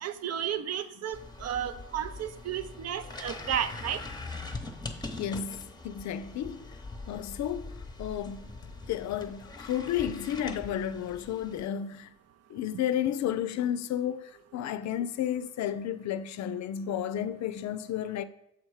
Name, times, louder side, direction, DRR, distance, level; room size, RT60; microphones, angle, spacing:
voice 1, 0.0-4.0, right 9 dB, 55° right, 0.6 m, -33 dB
sound 1, 1.1-11.7, left 3 dB, 15° left, 0.8 m, -42 dB
voice 2, 5.2-6.7 7.1-12.1 12.5-18.2, left 10 dB, 65° left, 0.5 m, -32 dB
7.1 x 4.3 x 4.8 m
cardioid pair, 90°, 30 cm